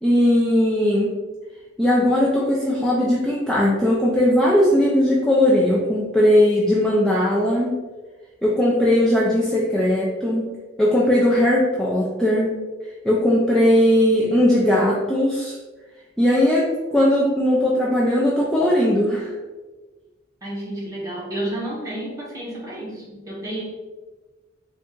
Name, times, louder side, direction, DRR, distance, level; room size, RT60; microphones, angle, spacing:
voice 1, 0.0-1.2 1.8-7.8 8.4-10.5 10.8-12.6 13.0-15.6 16.2-19.3, left 1 dB, 5° left, -6 dB, 0.5 m, -18 dB
voice 2, 20.4-23.6, right 1 dB, 20° right, -7 dB, 1.4 m, -31 dB
3.8 x 2.5 x 3.7 m, 1.3 s
head